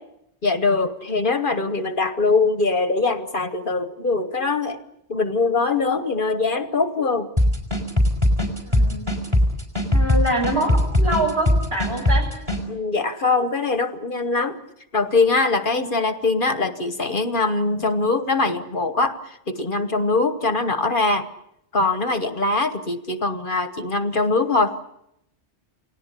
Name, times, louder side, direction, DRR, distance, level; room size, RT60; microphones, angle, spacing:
voice 1, 0.4-4.8 5.1-7.3 12.7-14.6 14.9-21.3 21.7-24.8, left 3 dB, 50° left, 10 dB, 1.3 m, -22 dB
sound 1, 7.4-12.6, left 1 dB, 25° right, 4.6 m, -19 dB
voice 2, 8.6-9.1 9.9-12.3, right 1 dB, 60° right, 1 dB, 7.3 m, -25 dB
29.0 x 18.5 x 8.3 m, 0.82 s
omnidirectional pair, 1.2 m